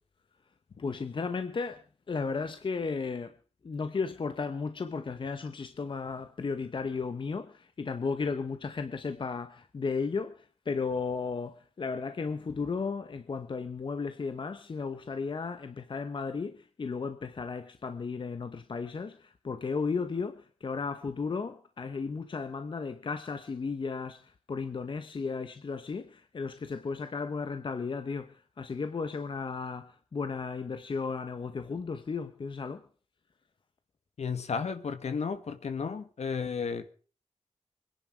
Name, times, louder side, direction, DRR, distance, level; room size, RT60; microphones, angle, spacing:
voice 1, 0.8-1.8 2.1-3.3 3.6-32.8, left 4 dB, 45° left, 1.0 m, -34 dB
voice 2, 34.2-36.9, left 5 dB, 70° left, 1.8 m, -33 dB
25.5 x 10.5 x 4.6 m
wide cardioid pair, 155°, 12 cm